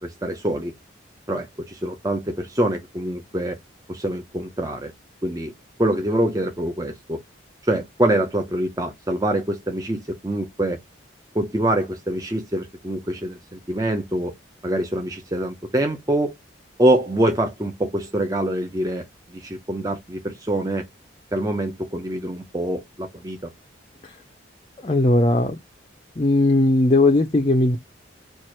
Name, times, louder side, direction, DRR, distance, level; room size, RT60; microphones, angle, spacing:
voice 1, 0.0-0.7 1.3-3.6 3.9-4.9 5.2-5.5 5.8-7.2 7.6-10.8 11.3-14.3 14.6-16.3 16.8-19.0 19.3-20.9 21.3-23.4, right 1 dB, 20° right, 0.6 m, -25 dB
voice 2, 24.8-25.6 26.2-27.8, left 2 dB, 25° left, 0.5 m, -18 dB
4.5 x 2.5 x 4.4 m
head